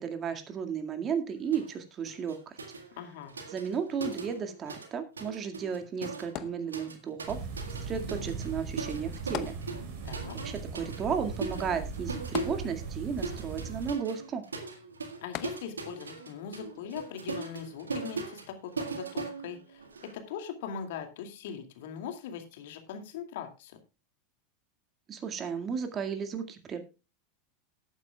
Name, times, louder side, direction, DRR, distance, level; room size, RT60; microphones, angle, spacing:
voice 1, 0.0-2.6 3.5-7.4 7.8-9.5 10.3-14.4 25.1-26.8, right 6 dB, 35° right, 7 dB, 2.0 m, -34 dB
sound 1, 1.5-1.8 2.1-4.9 5.2-20.1, right 4 dB, 85° right, 1.8 m, -40 dB
voice 2, 3.0-3.3 10.0-10.4 15.2-23.8, left 8 dB, 65° left, 6 dB, 2.3 m, -41 dB
sound 2, 6.4-7.3 9.3-10.2 10.5-10.6 12.4-13.2 15.3-16.1 16.8-16.9, left 15 dB, 50° left, 0.8 m, -40 dB
sound 3, 7.3-13.9, right 4 dB, 60° right, 3.5 m, -39 dB
18.5 x 9.0 x 2.3 m, 0.29 s
hypercardioid pair, 85°, 0 cm